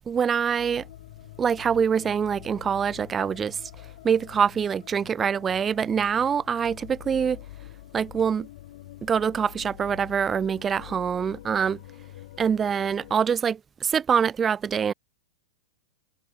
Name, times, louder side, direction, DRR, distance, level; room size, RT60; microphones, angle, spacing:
voice 1, 0.1-0.9 1.4-3.6 4.0-7.4 7.9-8.5 9.0-11.8 12.4-14.9, right 7 dB, 20° right, 0.4 m, -25 dB
sound 1, 0.6-13.2, left 16 dB, 65° left, 5.9 m, -46 dB
hypercardioid pair, 125°, 0 cm